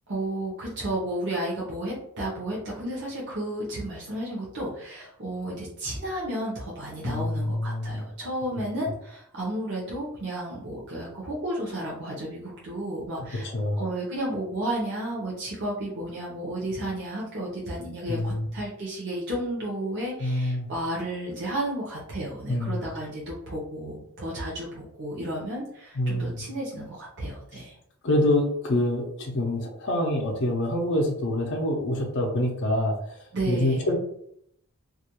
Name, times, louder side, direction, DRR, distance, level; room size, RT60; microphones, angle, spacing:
voice 1, 0.1-13.5 13.8-27.8 33.3-33.8, right 1 dB, 55° right, -6 dB, 0.7 m, -32 dB
voice 2, 7.0-8.0 13.4-13.8 18.1-18.5 20.2-20.7 22.5-22.8 26.0-26.4 28.0-34.0, left 1 dB, 55° left, 1 dB, 0.5 m, -26 dB
2.3 x 2.2 x 2.8 m, 0.70 s
head